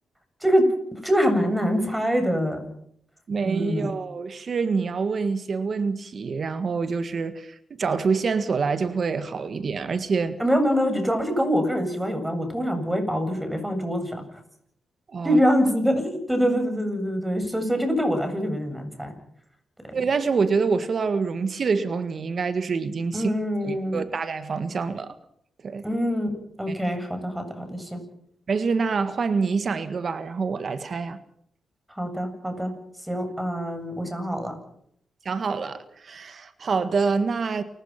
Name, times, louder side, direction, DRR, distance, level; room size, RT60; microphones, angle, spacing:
voice 1, 0.9-2.6 3.4-3.9 10.4-14.4 15.2-19.1 19.9-20.0 23.1-24.0 25.8-26.3 26.6-28.0 31.9-32.7 33.1-34.6, equal, 10° right, 7.6 m, -24 dB
voice 2, 3.3-10.4 15.1-15.4 19.9-23.3 23.6-25.2 25.6-25.9 26.7-26.8 28.5-31.2 35.3-37.6, right 5 dB, 55° right, 1.7 m, -26 dB
29.0 x 16.0 x 5.9 m
cardioid pair, 75°, 0 cm